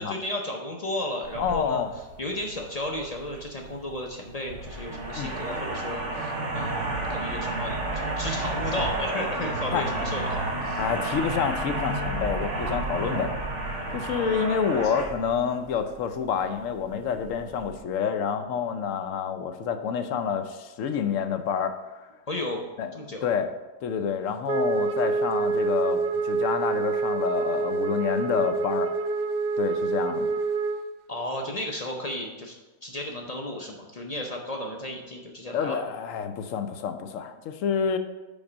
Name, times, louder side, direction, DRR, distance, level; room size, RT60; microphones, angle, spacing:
voice 1, 0.0-1.8 2.2-10.8 14.2-14.4 14.8-14.9 22.3-22.6 22.9-23.3 31.1-32.5 32.8-35.8, left 1 dB, 45° left, 1 dB, 0.5 m, -34 dB
sound 1, 1.2-17.8, right 2 dB, 60° right, 1.4 m, -32 dB
voice 2, 1.4-1.9 5.2-5.3 9.7-9.9 10.8-13.3 13.9-22.1 22.8-22.9 23.2-23.5 23.8-28.9 29.6-30.3 35.5-38.0, left 7 dB, 70° left, 8 dB, 0.9 m, -28 dB
Wind instrument woodwind instrument, 24.5-30.9, right 4 dB, 80° right, 0.5 m, -27 dB
5.2 x 4.8 x 6.1 m, 1.1 s
omnidirectional pair, 1.5 m